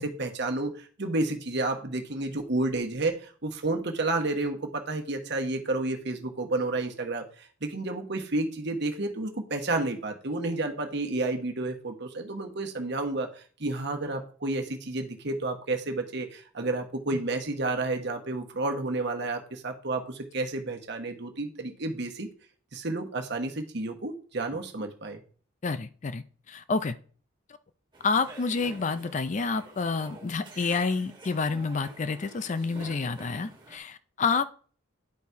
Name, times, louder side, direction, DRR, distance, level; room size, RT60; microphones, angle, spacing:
voice 1, 0.0-22.3 22.7-25.2, right 2 dB, 60° right, 1.2 m, -31 dB
voice 2, 25.6-27.0 28.0-34.4, left 4 dB, 35° left, 0.4 m, -29 dB
sound 1, 27.9-33.8, right 2 dB, 25° right, 1.5 m, -48 dB
10.5 x 4.2 x 4.7 m
head